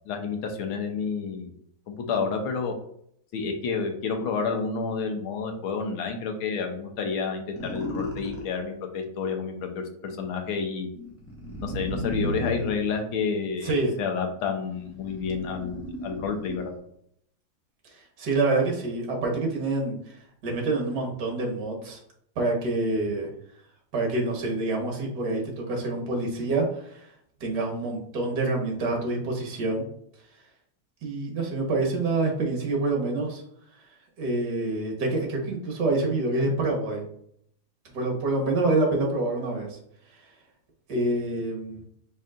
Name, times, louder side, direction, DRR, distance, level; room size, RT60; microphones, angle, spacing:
voice 1, 0.1-1.5 1.9-2.7 3.3-10.9 11.6-16.7, left 5 dB, 85° left, 4 dB, 1.7 m, -30 dB
sound 1, 7.6-8.6 10.9-13.7 14.4-16.9, left 1 dB, 10° left, 0.8 m, -35 dB
voice 2, 13.6-13.9 17.8-22.0 22.4-23.3 23.9-27.1 27.4-29.9 31.0-33.4 34.2-37.0 37.9-39.8 40.1-40.2 40.9-41.8, right 2 dB, 55° right, 0 dB, 1.8 m, -27 dB
5.2 x 4.1 x 2.5 m, 0.68 s
omnidirectional pair, 2.2 m